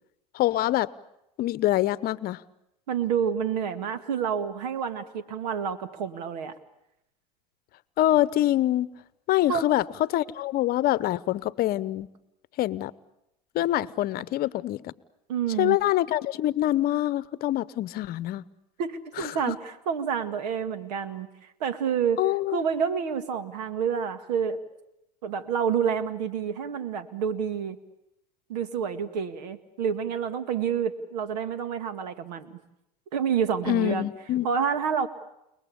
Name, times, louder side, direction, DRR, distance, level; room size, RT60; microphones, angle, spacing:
voice 1, 0.3-0.9 1.4-2.4 8.0-8.9 9.3-12.1 12.6-12.9 13.5-14.9 15.6-18.4 19.2-19.5 22.2-22.6 33.7-34.5, left 14 dB, 45° left, 18 dB, 0.9 m, -25 dB
voice 2, 2.9-6.6 9.5-9.7 15.3-15.8 18.8-21.3 21.6-22.2 22.5-24.6 25.2-27.8 28.5-32.6 33.1-34.1 34.4-35.1, right 7 dB, 75° right, 12 dB, 1.9 m, -28 dB
30.0 x 20.0 x 8.6 m, 0.87 s
hypercardioid pair, 90°, 21 cm